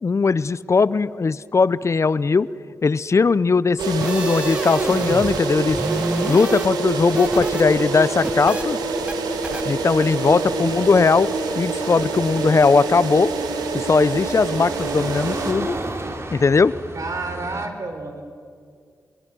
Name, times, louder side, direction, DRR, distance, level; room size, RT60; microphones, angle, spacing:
voice 1, 0.0-2.5 2.8-5.8 6.3-8.8 9.6-11.3 11.5-13.3 13.7-15.8 16.3-16.7, left 4 dB, 45° left, 18 dB, 0.7 m, -19 dB
sound 1, 3.8-5.4 5.7-7.6 7.9-8.6 9.1-9.2 9.4-9.6, right 1 dB, 20° right, 1.1 m, -29 dB
sound 2, 3.8-15.5, right 3 dB, 90° right, 2.1 m, -26 dB
sound 3, 8.5-17.7, right 2 dB, 45° right, 2.9 m, -37 dB
voice 2, 10.1-10.6 16.9-18.2, right 3 dB, 60° right, 6 dB, 4.0 m, -31 dB
26.5 x 21.5 x 6.2 m, 2.2 s
supercardioid pair, 45°, 7 cm